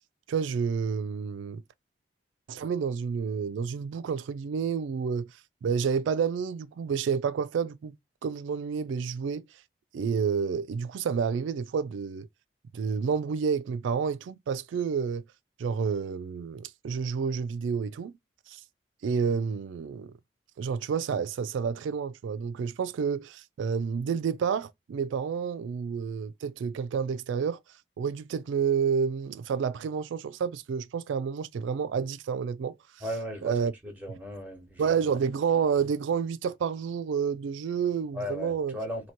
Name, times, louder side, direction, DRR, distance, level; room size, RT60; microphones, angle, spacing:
voice 1, 0.3-1.6 2.5-8.0 8.2-9.6 9.9-12.3 12.7-15.2 15.6-18.1 18.5-18.6 19.0-20.1 20.6-27.6 28.0-33.0 33.4-33.7 34.8-38.7, right 6 dB, 90° right, 0.3 m, -29 dB
voice 2, 33.0-33.5 33.8-34.8 38.1-39.1, equal, 10° right, 1.2 m, -36 dB
2.9 x 2.8 x 4.4 m
head